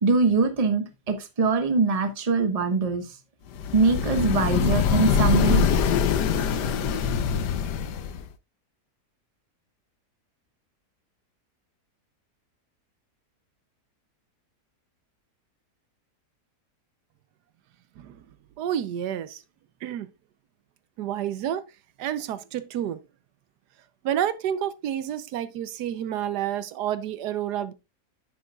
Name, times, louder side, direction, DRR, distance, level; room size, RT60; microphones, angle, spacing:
voice 1, 0.0-3.2 3.7-5.6, right 4 dB, 25° right, 1.0 m, -23 dB
sound 1, 3.6-8.3, left 6 dB, 90° left, 1.4 m, -23 dB
voice 2, 18.6-19.4 19.8-20.1 21.0-21.7 22.0-23.0 24.0-27.7, right 10 dB, 80° right, 1.2 m, -29 dB
10.0 x 8.2 x 2.3 m
omnidirectional pair, 1.7 m